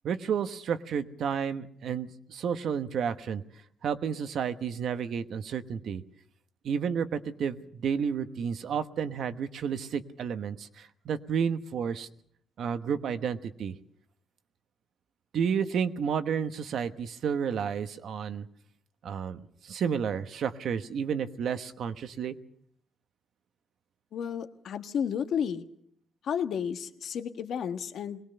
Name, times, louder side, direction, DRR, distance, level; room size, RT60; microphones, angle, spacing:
voice 1, 0.0-3.4 3.8-6.0 6.6-12.1 12.6-13.8 15.3-18.5 19.0-22.4, right 7 dB, 70° right, 10 dB, 1.1 m, -31 dB
voice 2, 24.1-25.7 26.2-28.2, left 8 dB, 70° left, 7 dB, 1.4 m, -32 dB
22.0 x 20.0 x 6.8 m, 0.64 s
wide cardioid pair, 165°, 0 cm